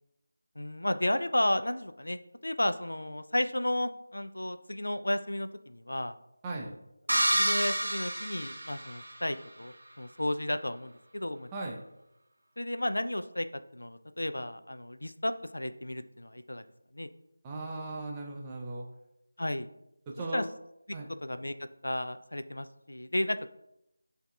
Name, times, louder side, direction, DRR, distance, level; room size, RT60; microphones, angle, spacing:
voice 1, 0.6-6.2 7.3-11.5 12.6-13.5 13.7-16.6 16.9-17.1 19.4-19.7 20.3-20.4 21.2-21.5 21.8-23.5, left 1 dB, 75° left, 10 dB, 0.3 m, -33 dB
voice 2, 6.4-6.7 11.5-11.8 17.4-18.9 20.1-20.4 20.9-21.1, right 2 dB, 15° right, -2 dB, 0.4 m, -37 dB
sound 1, 7.1-9.3, right 1 dB, 70° right, 0.9 m, -29 dB
7.8 x 2.7 x 2.3 m, 0.84 s
figure-of-eight pair, 165°, 0 cm